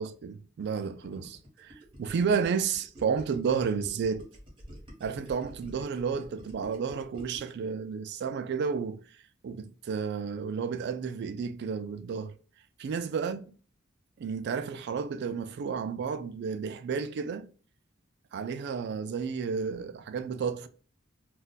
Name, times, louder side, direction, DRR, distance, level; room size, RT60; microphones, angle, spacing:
voice 1, 0.0-4.3 5.0-9.0 9.4-12.3 12.8-13.4 14.2-17.5 18.3-20.7, right 6 dB, 55° right, 0.3 m, -32 dB
Gurgling, 0.6-7.7, equal, 25° right, 1.1 m, -49 dB
2.3 x 2.2 x 3.9 m
head